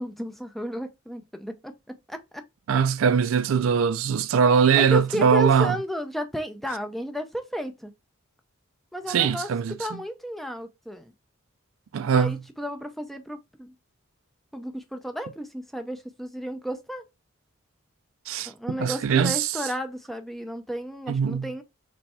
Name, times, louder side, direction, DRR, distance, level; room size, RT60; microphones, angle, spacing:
voice 1, 0.0-2.4 4.7-7.9 8.9-9.5 9.8-11.1 12.1-13.7 14.5-17.0 18.5-21.6, equal, ahead, 0.5 m, -33 dB
voice 2, 2.7-5.8 9.1-10.0 11.9-12.4 18.3-18.5 18.8-19.6 21.1-21.5, right 6 dB, 70° right, 0.3 m, -21 dB
3.4 x 3.3 x 4.2 m
head